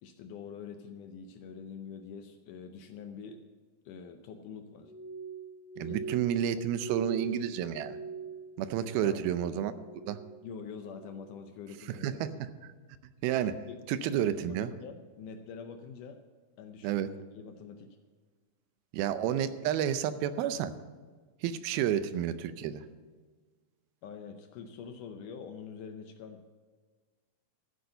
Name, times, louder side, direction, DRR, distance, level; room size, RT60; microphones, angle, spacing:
voice 1, 0.0-3.4 3.9-4.9 5.9-6.0 7.0-7.1 9.0-9.2 10.4-12.2 13.7-13.8 14.1-16.2 16.6-17.0 17.3-17.9 24.0-26.5, left 6 dB, 75° left, 6 dB, 1.9 m, -45 dB
Glass, 4.8-9.4 9.7-10.4 10.8-11.3 11.9-12.2, right 5 dB, 45° right, 3.2 m, -42 dB
voice 2, 5.8-8.0 8.6-9.7 10.1-10.2 11.9-12.7 13.2-14.7 16.8-17.2 18.9-20.7 21.4-22.9, right 10 dB, 90° right, 12 dB, 2.6 m, -31 dB
14.5 x 7.9 x 6.7 m, 1.5 s
omnidirectional pair, 4.2 m